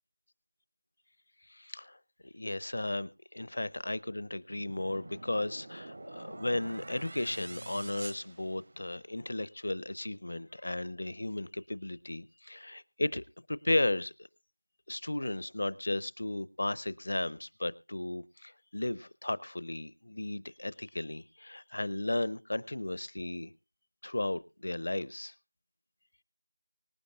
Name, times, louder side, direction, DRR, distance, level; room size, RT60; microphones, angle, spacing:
voice 1, 1.5-14.1 14.9-23.5 24.0-25.3, left 1 dB, 55° left, 21 dB, 0.7 m, -35 dB
sound 1, 4.5-9.1, right 2 dB, 45° right, 0.7 m, -47 dB
24.5 x 9.7 x 2.4 m, 0.27 s
figure-of-eight pair, 170°, 0 cm